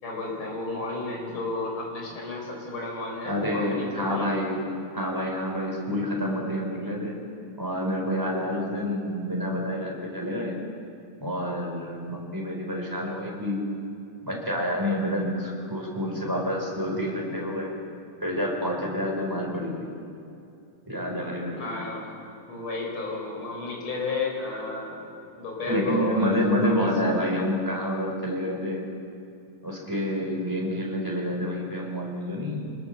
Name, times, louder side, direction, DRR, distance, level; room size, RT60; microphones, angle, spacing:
voice 1, 0.0-4.3 21.6-22.1 22.4-25.1 25.4-26.9, left 3 dB, 70° left, -1 dB, 5.6 m, -32 dB
voice 2, 3.2-4.7 4.9-7.2 7.6-10.6 11.2-13.6 14.2-17.7 18.2-19.9 20.9-21.7 25.7-28.8 29.6-32.7, equal, 10° right, -1 dB, 4.4 m, -28 dB
26.0 x 20.5 x 7.0 m, 2.6 s
omnidirectional pair, 2.3 m